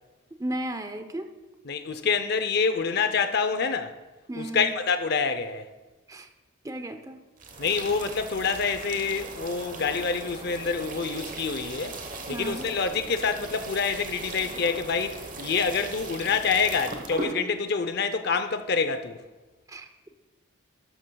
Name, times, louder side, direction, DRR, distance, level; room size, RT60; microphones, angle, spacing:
voice 1, 0.4-1.4 4.3-4.7 6.1-6.3 6.6-7.2 12.3-12.7 19.7-19.9, right 1 dB, 15° right, 0.6 m, -34 dB
voice 2, 1.7-4.0 4.4-5.7 7.6-12.0 12.3-19.2, left 5 dB, 50° left, 0.6 m, -27 dB
sound 1, 7.4-17.3, right 3 dB, 40° right, 1.1 m, -38 dB
12.5 x 12.0 x 2.3 m
head